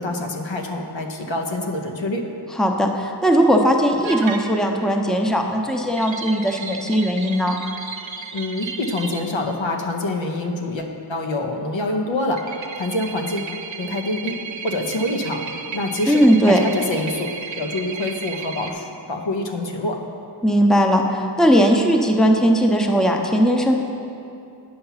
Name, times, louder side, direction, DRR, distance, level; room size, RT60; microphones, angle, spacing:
voice 1, 0.0-2.2 8.3-13.5 13.8-15.4 15.7-17.3 17.6-20.0, left 2 dB, 80° left, 2 dB, 0.9 m, -26 dB
voice 2, 2.5-7.6 16.1-16.6 20.4-21.0 21.4-23.8, equal, ahead, 2 dB, 0.7 m, -18 dB
sound 1, 4.0-4.9 6.0-9.3 12.4-18.7, right 5 dB, 85° right, 0.7 m, -34 dB
8.7 x 5.7 x 5.7 m, 2.6 s
wide cardioid pair, 55°, 44 cm